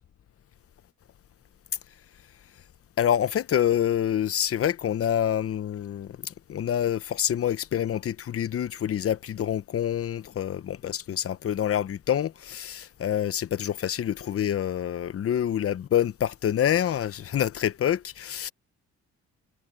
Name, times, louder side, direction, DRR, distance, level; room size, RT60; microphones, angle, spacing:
voice 1, 3.0-18.5, left 10 dB, 50° left, 0.9 m, -27 dB
cardioid pair, 90°, 30 cm